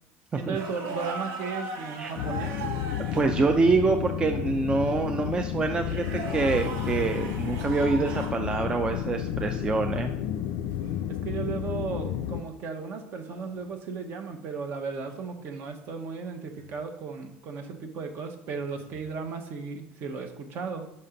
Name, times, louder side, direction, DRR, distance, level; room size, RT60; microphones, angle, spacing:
voice 1, 0.3-2.7 11.2-20.8, right 5 dB, 50° right, 5 dB, 0.9 m, -35 dB
sound 1, 0.5-3.6 5.7-8.4 10.8-11.0 13.2-13.6 16.5-16.7 18.7-19.0, right 3 dB, 70° right, 1.1 m, -38 dB
sound 2, 2.2-12.4, left 10 dB, 75° left, 0.4 m, -31 dB
voice 2, 3.0-10.1, right 4 dB, 20° right, 5 dB, 0.4 m, -26 dB
5.7 x 4.2 x 5.1 m, 0.79 s
cardioid pair, 145°, 5 cm